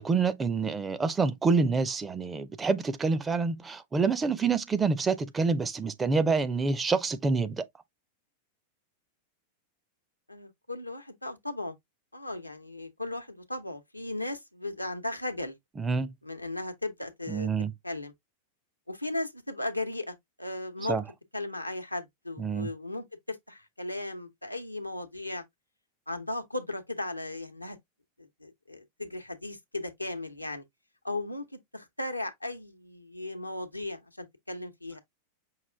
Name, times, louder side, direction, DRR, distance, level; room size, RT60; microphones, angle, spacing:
voice 1, 0.0-7.6 15.8-16.1 17.3-17.7 20.9-21.0 22.4-22.7, right 4 dB, 15° right, 0.5 m, -27 dB
voice 2, 10.3-11.8 12.1-15.5 16.2-17.5 17.8-18.1 18.9-21.0 21.3-25.4 26.1-27.8 28.2-30.6 31.0-31.5 31.7-35.0, left 2 dB, 85° left, 0.8 m, -36 dB
5.6 x 2.4 x 3.2 m
figure-of-eight pair, 90°, 0 cm